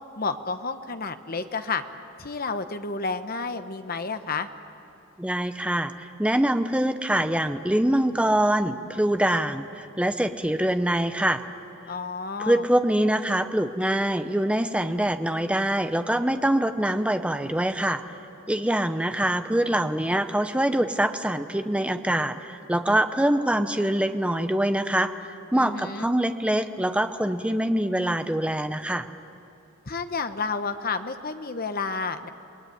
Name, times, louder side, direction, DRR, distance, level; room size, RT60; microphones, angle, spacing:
voice 1, 0.2-1.8 2.2-4.5 11.9-12.6 25.5-26.1 29.8-32.3, left 4 dB, 45° left, 9 dB, 1.1 m, -30 dB
voice 2, 5.2-11.4 12.4-18.0 18.5-25.1 25.5-29.1, right 1 dB, 5° right, 9 dB, 0.8 m, -24 dB
27.5 x 19.5 x 9.4 m, 2.8 s
head